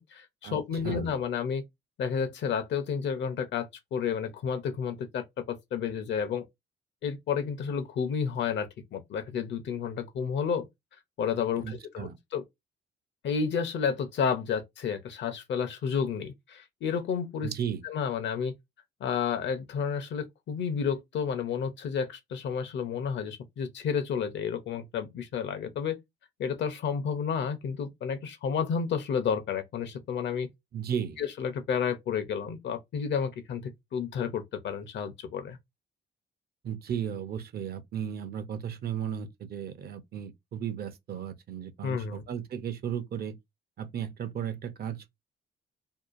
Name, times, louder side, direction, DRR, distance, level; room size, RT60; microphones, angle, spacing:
voice 1, 0.0-1.6 2.0-6.4 7.0-10.7 11.2-12.4 13.2-17.5 17.8-18.5 19.0-26.0 26.4-30.5 31.2-35.6 41.8-42.2, left 6 dB, 65° left, 0.6 m, -31 dB
voice 2, 11.6-12.2 17.4-17.8 30.7-31.2 36.6-43.4 43.8-45.1, right 8 dB, 55° right, 0.6 m, -35 dB
2.7 x 2.3 x 2.5 m
cardioid pair, 90°, 20 cm